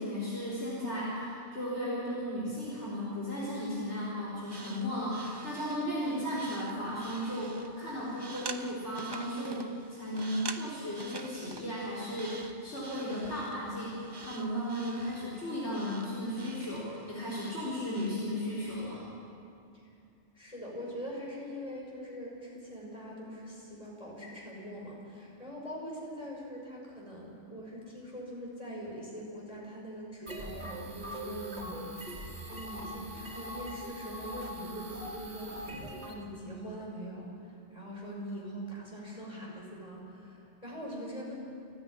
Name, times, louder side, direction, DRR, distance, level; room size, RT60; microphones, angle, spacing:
voice 1, 0.0-19.1, equal, 75° left, -7 dB, 4.6 m, -35 dB
sound 1, 4.4-18.3, right 3 dB, 25° right, 0.7 m, -47 dB
voice 2, 20.3-41.3, equal, 30° left, -3 dB, 5.9 m, -42 dB
sound 2, 30.3-36.1, equal, 65° right, 2.8 m, -42 dB
29.0 x 9.8 x 10.0 m, 2.5 s
omnidirectional pair, 1.2 m